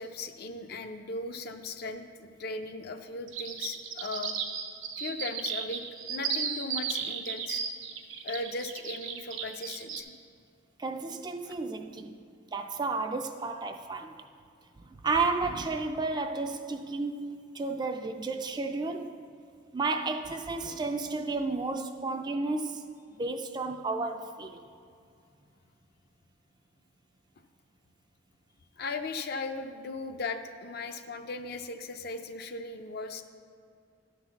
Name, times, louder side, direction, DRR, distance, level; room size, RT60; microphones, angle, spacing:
voice 1, 0.0-4.4 5.0-5.8 6.1-7.6 8.2-10.1 11.4-11.6 28.8-33.2, left 3 dB, 50° left, 7 dB, 0.5 m, -37 dB
sound 1, 3.3-10.0, right 7 dB, 80° right, 0.7 m, -34 dB
voice 2, 10.8-12.2 12.5-14.2 14.8-19.1 19.7-22.8 23.2-24.6, right 3 dB, 20° right, 5 dB, 0.3 m, -32 dB
11.0 x 4.0 x 7.0 m, 2.4 s
head